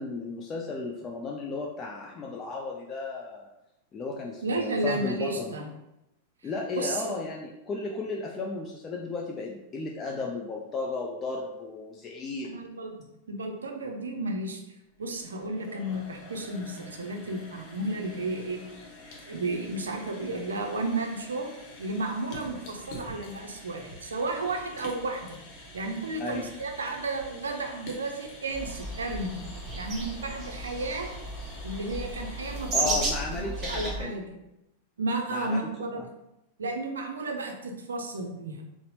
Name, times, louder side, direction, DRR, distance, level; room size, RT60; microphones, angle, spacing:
voice 1, 0.0-3.5 3.9-5.5 6.4-12.5 26.2-26.5 32.7-34.3 35.3-35.6 35.9-36.1, left 3 dB, 25° left, -1 dB, 0.4 m, -34 dB
voice 2, 4.4-5.7 6.8-7.1 12.4-12.9 13.3-14.6 15.0-18.6 19.3-21.5 21.8-25.4 25.7-29.4 29.7-31.1 31.6-33.0 33.3-34.2 35.0-36.0 36.6-38.6, right 2 dB, 75° right, 3 dB, 0.5 m, -33 dB
sound 1, 14.9-33.2, left 1 dB, 45° left, 0.9 m, -47 dB
sound 2, 28.5-34.0, right 2 dB, 35° right, 1.0 m, -34 dB
3.9 x 2.0 x 2.9 m, 0.90 s
figure-of-eight pair, 95°, 0 cm